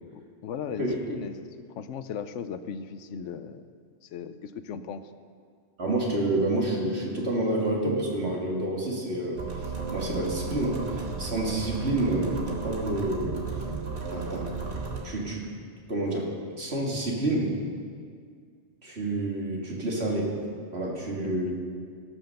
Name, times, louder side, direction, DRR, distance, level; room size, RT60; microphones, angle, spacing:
voice 1, 0.1-3.7 4.0-5.0 21.2-21.5, left 7 dB, 85° left, 11 dB, 1.0 m, -37 dB
voice 2, 5.8-13.4 14.1-14.5 15.0-15.5 15.9-17.6 18.8-20.4 20.7-21.5, right 1 dB, 60° right, -2 dB, 2.3 m, -29 dB
sound 1, 9.4-15.0, right 4 dB, 90° right, 1.8 m, -34 dB
17.0 x 6.3 x 6.5 m, 2.1 s
omnidirectional pair, 1.2 m